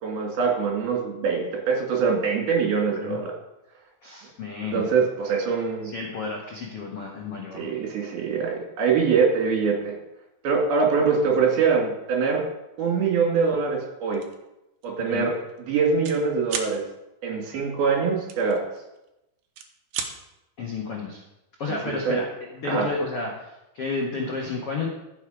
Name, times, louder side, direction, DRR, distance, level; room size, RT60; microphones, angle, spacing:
voice 1, 0.0-3.3 4.7-5.9 7.5-10.0 10.4-12.5 12.8-14.2 14.8-15.3 15.6-16.8 17.2-18.7 21.7-21.8 22.1-22.2 22.7-22.9, right 5 dB, 60° right, -1 dB, 4.0 m, -23 dB
voice 2, 4.0-4.9 5.8-7.8 15.0-15.3 20.6-21.2 21.6-22.3 22.5-24.9, left 4 dB, 65° left, -2 dB, 1.4 m, -31 dB
sound 1, 14.1-14.4 14.8-15.0 15.3-16.2 16.5-16.7 18.3-19.1 19.4-20.1, right 7 dB, 90° right, 1.7 m, -33 dB
15.0 x 6.5 x 5.0 m, 0.91 s
omnidirectional pair, 5.2 m